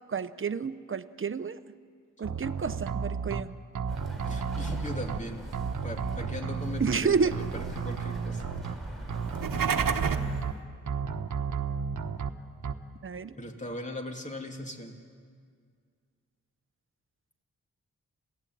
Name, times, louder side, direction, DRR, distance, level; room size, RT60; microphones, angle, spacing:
voice 1, 0.1-1.6 2.2-3.5 6.8-7.3 13.0-13.4, right 5 dB, 40° right, 12 dB, 0.9 m, -29 dB
sound 1, 2.2-3.4 3.8-5.2 5.5-7.0 7.3-8.7 9.1-10.5 10.9-12.3 12.6-12.7, right 6 dB, 65° right, 1.2 m, -33 dB
Bird, 3.9-10.4, right 1 dB, ahead, 5.3 m, -41 dB
voice 2, 4.3-5.4 5.8-8.4 13.4-14.9, left 1 dB, 20° left, 3 dB, 2.9 m, -39 dB
sound 2, 9.2-10.4, right 7 dB, 85° right, 1.1 m, -29 dB
27.5 x 16.0 x 9.3 m, 2.1 s
cardioid pair, 75°, 32 cm